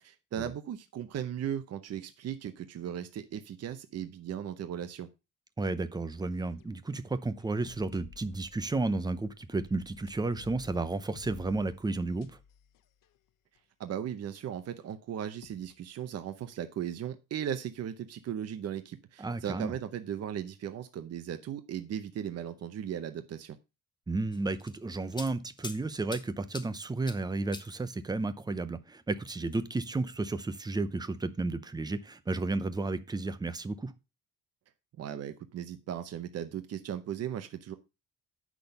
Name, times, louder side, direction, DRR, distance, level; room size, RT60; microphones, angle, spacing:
voice 1, 0.0-5.1 13.8-23.6 35.0-37.7, right 9 dB, 50° right, 0.8 m, -37 dB
voice 2, 5.6-12.4 19.2-19.7 24.1-33.9, right 3 dB, 15° right, 0.7 m, -32 dB
sound 1, 6.1-13.1 13.6-13.7 14.3-15.7, left 7 dB, 80° left, 0.9 m, -54 dB
sound 2, 24.3-25.8 26.1-26.7 27.1-27.2 27.5-27.7 29.2-29.7, left 3 dB, 15° left, 0.9 m, -43 dB
8.7 x 6.2 x 5.3 m
cardioid pair, 160°, 32 cm